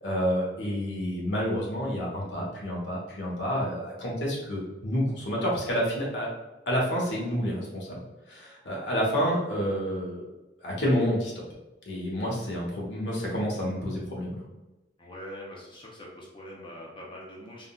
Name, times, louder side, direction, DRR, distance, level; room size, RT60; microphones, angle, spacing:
voice 1, 0.0-6.3 6.7-10.3 10.6-11.4 11.9-14.4, equal, 80° left, -4 dB, 1.0 m, -29 dB
voice 2, 15.0-17.7, equal, 30° left, -4 dB, 0.6 m, -43 dB
3.6 x 2.3 x 2.3 m, 1.1 s
head